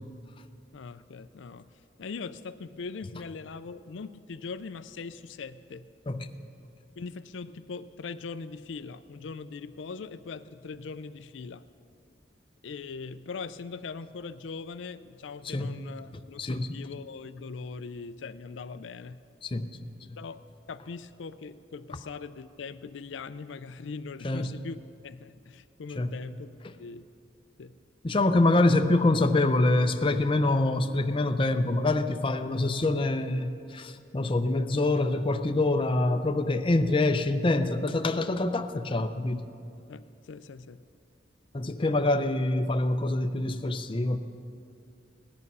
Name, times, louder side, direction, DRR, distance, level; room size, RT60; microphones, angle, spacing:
voice 1, 0.7-1.7 2.0-5.9 7.0-11.7 12.6-19.2 20.2-20.4 20.7-27.1 27.6-27.8 39.9-40.8, left 4 dB, 85° left, 12 dB, 0.5 m, -41 dB
voice 2, 16.1-16.9 19.4-20.2 24.2-24.6 26.0-26.2 28.0-39.5 41.5-44.2, left 2 dB, 30° left, 8 dB, 0.5 m, -26 dB
17.5 x 10.5 x 5.5 m, 2.5 s
head